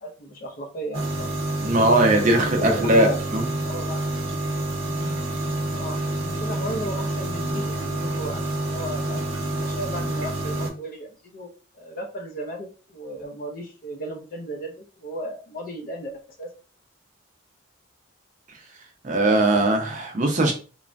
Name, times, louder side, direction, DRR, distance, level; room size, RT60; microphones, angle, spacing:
voice 1, 0.0-1.6 2.1-2.3 2.6-3.2 3.6-4.2 5.7-6.0 6.4-9.2 9.6-16.1 16.4-16.5, right 1 dB, 40° left, 0.5 m, -35 dB
sound 1, 0.9-10.7, right 1 dB, 70° right, 0.8 m, -28 dB
voice 2, 1.6-3.5 19.0-20.5, right 1 dB, 35° right, 0.5 m, -20 dB
3.1 x 2.1 x 2.5 m
head